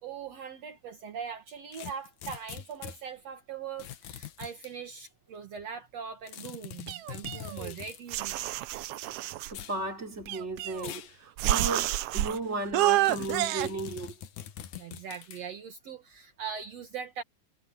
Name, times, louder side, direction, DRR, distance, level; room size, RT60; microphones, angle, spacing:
voice 1, 0.0-8.5 14.8-17.2, right 7 dB, 60° right, 2.7 m, -41 dB
sound 1, 1.7-3.0 3.8-4.7 6.3-8.0 9.5-9.8 10.8-11.2 11.6-11.7 13.1-15.4, left 10 dB, 80° left, 2.8 m, -43 dB
sound 2, 6.9-7.7 8.1-9.5 10.3-11.0 11.4-12.4 12.7-13.7, right 15 dB, 80° right, 1.3 m, -29 dB
voice 2, 9.5-14.2, right 2 dB, 20° right, 4.0 m, -35 dB
omnidirectional pair, 3.4 m